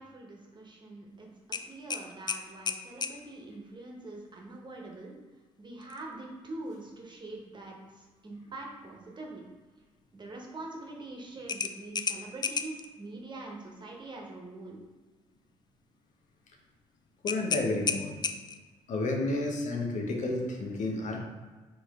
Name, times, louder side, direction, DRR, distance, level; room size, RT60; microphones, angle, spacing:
voice 1, 0.0-5.1 5.6-9.4 10.1-14.8, right 2 dB, 30° right, -1 dB, 1.2 m, -44 dB
sound 1, 1.5-3.2 5.8-6.0 6.5-6.6 11.5-12.9 17.3-18.7, left 5 dB, 30° left, 0.4 m, -33 dB
voice 2, 17.2-18.2 18.9-21.2, left 2 dB, 55° left, 0 dB, 0.9 m, -31 dB
4.4 x 3.3 x 3.6 m, 1.3 s
hypercardioid pair, 50°, 15 cm